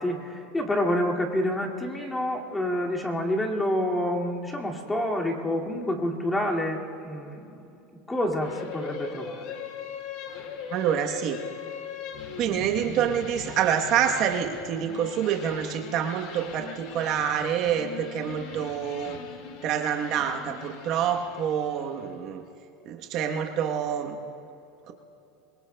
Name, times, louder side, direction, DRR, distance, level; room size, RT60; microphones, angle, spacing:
voice 1, 0.0-7.6 8.1-9.6, left 1 dB, 10° left, -1 dB, 2.3 m, -28 dB
sound 1, 8.4-22.0, left 6 dB, 65° left, 2.0 m, -40 dB
voice 2, 10.7-11.4 12.4-19.2 19.6-22.4 22.9-24.2 24.9-25.0, right 8 dB, 50° right, 4 dB, 1.1 m, -27 dB
26.0 x 23.0 x 2.3 m, 2.8 s
supercardioid pair, 130°, 0 cm